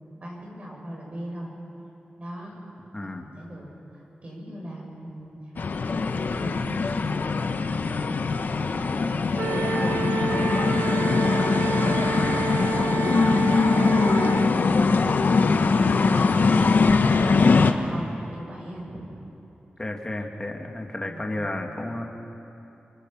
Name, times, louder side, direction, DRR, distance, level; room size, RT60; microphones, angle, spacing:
voice 1, 0.2-1.5 2.2-2.6 3.0-10.5 10.7-16.5 16.8-19.1 21.0-21.5, right 1 dB, 40° right, -2 dB, 7.4 m, -39 dB
voice 2, 2.9-3.3 19.8-22.1, left 1 dB, 20° left, 1 dB, 2.4 m, -32 dB
Japan Matsudo Pachinko Doors Open Short, 5.6-17.7, left 4 dB, 60° left, 1.2 m, -22 dB
Wind instrument woodwind instrument, 9.4-14.5, right 6 dB, 85° right, 0.8 m, -30 dB
29.0 x 24.0 x 5.9 m, 2.9 s
wide cardioid pair, 105°, 4 cm